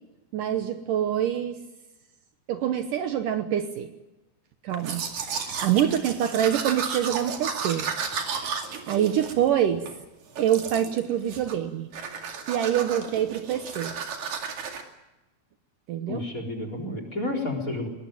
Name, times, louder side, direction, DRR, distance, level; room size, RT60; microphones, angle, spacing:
voice 1, 0.3-1.6 2.5-3.9 4.6-5.0 5.3-7.9 8.3-8.6 8.9-9.9 10.4-11.9 12.5-13.9 15.9-16.2, right 10 dB, 70° right, 8 dB, 2.4 m, -25 dB
Domestic sounds home sounds, 4.7-10.0 10.4-11.0 11.3-11.7 11.9-14.8, right 6 dB, 55° right, 3.4 m, -33 dB
voice 2, 16.1-17.9, left 2 dB, 20° left, 5 dB, 4.1 m, -31 dB
22.0 x 19.0 x 9.1 m, 1.0 s
omnidirectional pair, 4.4 m